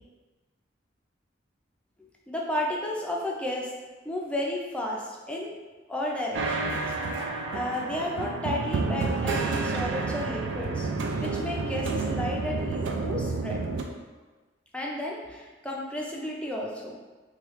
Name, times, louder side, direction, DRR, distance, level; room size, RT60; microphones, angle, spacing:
voice 1, 2.3-3.7 4.0-5.6 5.9-6.8 7.5-10.9 11.2-13.6 14.7-17.1, left 1 dB, 5° left, -3 dB, 0.4 m, -32 dB
sound 1, 6.3-13.8, right 3 dB, 80° right, 0.3 m, -30 dB
3.1 x 2.3 x 3.0 m, 1.3 s
head